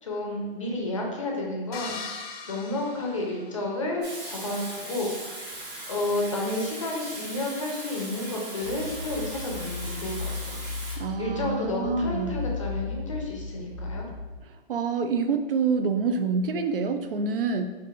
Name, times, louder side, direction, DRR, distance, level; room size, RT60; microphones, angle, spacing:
voice 1, 0.0-2.0 2.4-5.1 5.9-10.5 11.2-14.1, left 2 dB, 35° left, -1 dB, 0.5 m, -31 dB
sound 1, 1.7-3.9, left 4 dB, 80° left, 0.6 m, -40 dB
Water tap faucet / Sink (filling or washing), 4.0-11.0, right 1 dB, 45° right, 1.1 m, -39 dB
sound 2, 8.6-14.4, left 3 dB, 15° right, 1.2 m, -35 dB
voice 2, 11.0-12.4 14.7-17.7, right 5 dB, 70° right, 7 dB, 0.4 m, -27 dB
4.5 x 2.5 x 2.4 m, 1.2 s
hypercardioid pair, 175°, 29 cm